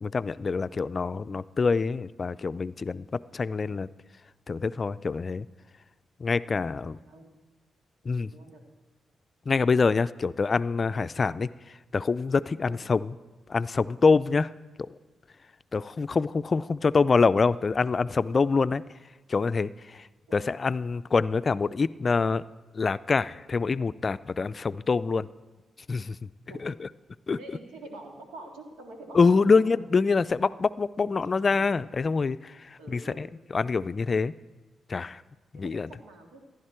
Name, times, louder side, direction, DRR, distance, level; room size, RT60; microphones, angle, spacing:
voice 1, 0.0-3.9 4.5-5.5 6.2-7.0 8.0-8.3 9.5-11.5 11.9-13.1 13.5-14.5 14.8-15.0 15.7-18.8 19.3-22.4 22.7-25.3 25.9-26.3 26.6-26.9 27.3-27.4 29.1-33.3 33.5-34.3 34.9-35.2 35.5-35.9, left 4 dB, 45° left, 16 dB, 0.4 m, -25 dB
voice 2, 6.8-7.4 8.3-8.6 12.7-12.8 16.1-16.2 16.6-16.7 20.3-20.4 26.5-26.6 27.4-29.7 31.3-31.7 32.8-33.2 35.5-36.4, right 2 dB, 85° right, 2 dB, 1.9 m, -46 dB
15.0 x 11.0 x 4.4 m, 1.3 s
hypercardioid pair, 45°, 0 cm